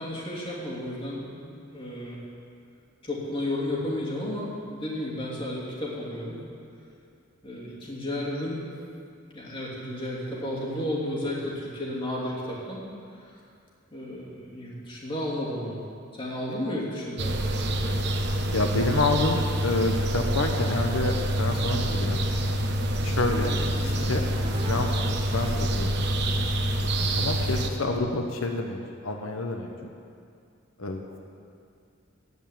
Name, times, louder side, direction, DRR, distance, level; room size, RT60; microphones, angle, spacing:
voice 1, 0.0-2.2 3.0-6.4 7.4-8.7 9.3-12.8 13.2-13.3 13.9-15.8 16.1-17.3 23.5-24.1 27.7-28.1, left 1 dB, 25° left, -6 dB, 2.9 m, -33 dB
sound 1, 17.2-27.7, right 1 dB, 55° right, 1.0 m, -26 dB
voice 2, 18.5-22.2 23.0-23.5 23.8-24.2 24.7-25.0 25.3-26.0 27.1-29.9 30.8-31.2, left 2 dB, 90° left, 3 dB, 1.0 m, -28 dB
sound 2, 24.3-26.1, right 1 dB, 25° right, 0.8 m, -41 dB
16.0 x 5.5 x 8.9 m, 2.4 s
head